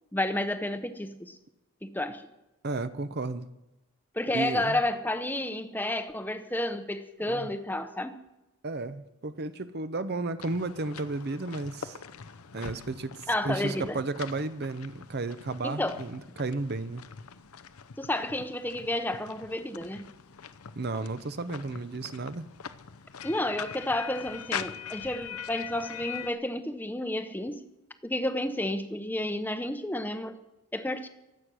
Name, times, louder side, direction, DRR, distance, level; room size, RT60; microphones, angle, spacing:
voice 1, 0.1-1.4 1.8-2.2 4.1-8.2 13.3-14.0 15.6-16.0 18.0-20.1 23.2-27.6 28.0-30.4 30.7-31.1, left 1 dB, 10° left, 0.8 m, -31 dB
voice 2, 2.6-3.5 4.3-4.8 7.3-7.5 8.6-12.0 12.5-17.0 20.8-22.5, right 3 dB, 45° right, 0.7 m, -33 dB
sound 1, 10.4-26.3, left 7 dB, 80° left, 0.7 m, -43 dB
22.5 x 8.3 x 6.2 m
head